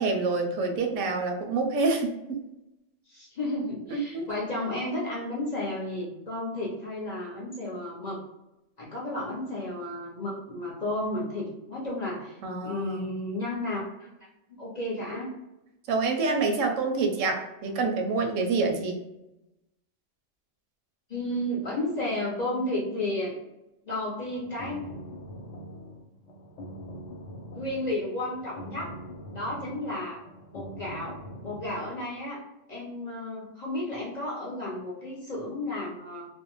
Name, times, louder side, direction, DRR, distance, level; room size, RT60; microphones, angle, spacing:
voice 1, 0.0-2.4 3.9-4.3 12.4-13.2 15.9-19.0, right 3 dB, 85° right, 3 dB, 0.9 m, -27 dB
voice 2, 3.1-8.2 8.8-13.8 14.5-15.3 21.1-23.4 23.8-24.8 27.5-28.9 29.3-30.2 30.5-32.4 32.7-36.3, left 1 dB, 45° left, -5 dB, 0.6 m, -33 dB
sound 1, 24.1-32.0, equal, 75° left, 0.9 m, -43 dB
2.6 x 2.1 x 2.9 m, 0.93 s
omnidirectional pair, 1.3 m